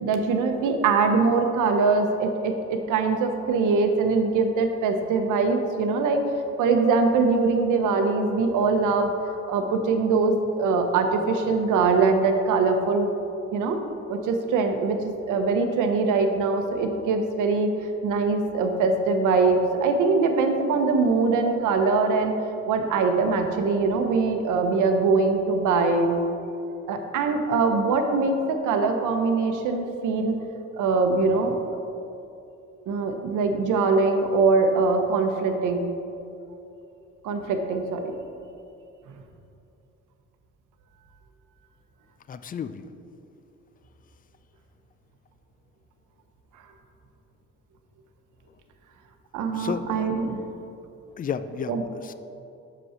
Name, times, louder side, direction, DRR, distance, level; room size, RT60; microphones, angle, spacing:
voice 1, 0.0-6.2 6.6-9.1 9.5-13.1 13.5-13.8 14.1-17.7 18.0-22.3 22.7-26.2 26.9-30.4 30.8-31.8 32.9-35.9 37.2-38.1 49.3-50.4 51.7-51.8, right 4 dB, 85° right, 5 dB, 0.8 m, -22 dB
voice 2, 42.3-42.8 49.6-50.0 51.2-52.1, left 7 dB, 30° left, 12 dB, 0.4 m, -32 dB
6.2 x 5.6 x 5.7 m, 2.7 s
cardioid pair, 90°, 30 cm